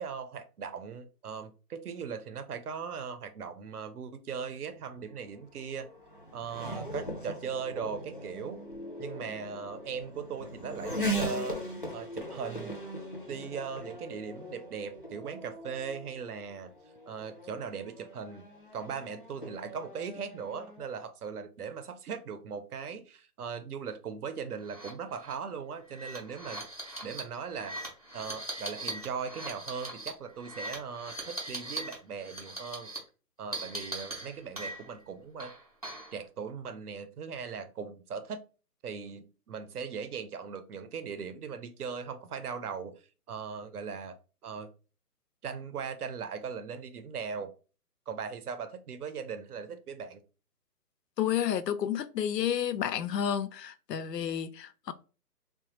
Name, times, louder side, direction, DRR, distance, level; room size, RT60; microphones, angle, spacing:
voice 1, 0.0-5.9 6.3-8.6 9.0-11.6 11.9-12.8 13.3-16.7 17.1-18.5 18.7-26.6 27.0-27.8 28.1-32.9 33.4-35.5 36.1-38.4 38.8-43.0 43.3-44.2 44.4-44.7 45.4-47.5 48.1-50.2, right 6 dB, 70° right, 0.7 m, -39 dB
Race car auto racing / Accelerating revving vroom, 4.6-20.8, equal, 35° left, 0.4 m, -40 dB
sound 1, 24.7-24.9 25.2-25.3 25.9-31.9 32.2-33.0 33.5-35.0 35.4-36.2, right 1 dB, 25° right, 0.5 m, -40 dB
voice 2, 51.2-54.9, left 9 dB, 90° left, 0.6 m, -31 dB
3.2 x 2.2 x 2.9 m
hypercardioid pair, 165°, 47 cm